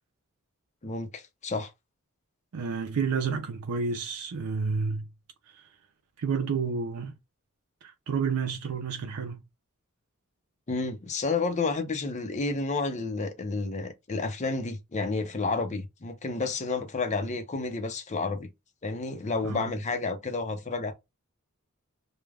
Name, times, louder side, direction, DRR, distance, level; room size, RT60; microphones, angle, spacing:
voice 1, 0.8-1.7 10.7-18.5 18.8-20.9, left 3 dB, 35° left, 0.6 m, -30 dB
voice 2, 2.5-5.1 5.5-5.6 6.2-7.1 7.8-9.4 19.4-19.7, right 5 dB, 90° right, 0.5 m, -30 dB
3.3 x 2.2 x 2.3 m
head